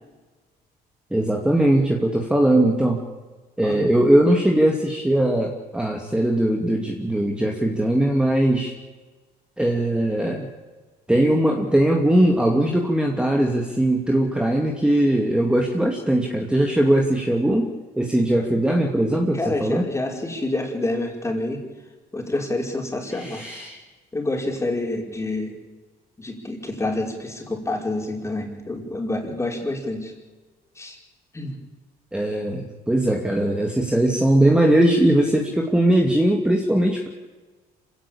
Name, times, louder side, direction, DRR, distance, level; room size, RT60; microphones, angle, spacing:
voice 1, 1.1-3.0 3.6-8.7 9.6-10.5 11.1-17.7 18.0-19.9 23.1-23.8 32.1-37.1, right 1 dB, 5° right, 1 dB, 2.5 m, -20 dB
voice 2, 19.3-21.6 22.1-23.4 24.1-25.5 26.2-30.1 30.8-31.0 31.3-31.6, left 2 dB, 15° left, 1 dB, 5.3 m, -27 dB
26.0 x 17.0 x 8.8 m, 1.3 s
cardioid pair, 110°, 17 cm